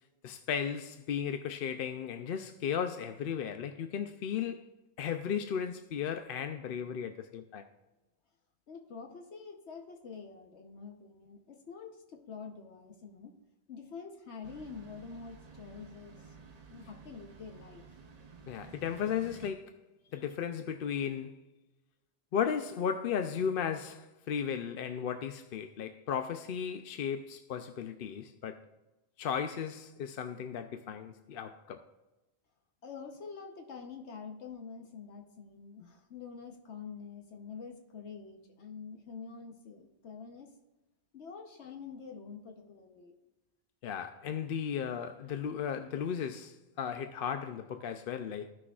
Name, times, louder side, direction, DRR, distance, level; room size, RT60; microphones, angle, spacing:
voice 1, 0.2-4.7 5.0-7.7 18.5-19.7 20.1-21.4 22.3-28.6 29.2-31.8 43.8-48.5, left 8 dB, 60° left, 0.7 m, -35 dB
voice 2, 8.7-13.3 13.7-16.3 16.7-17.8 20.0-20.2 32.8-40.5 41.1-43.1, left 5 dB, 80° left, 1.2 m, -46 dB
sound 1, 14.4-19.5, right 5 dB, 40° right, 0.7 m, -53 dB
15.5 x 6.1 x 2.3 m
omnidirectional pair, 1.1 m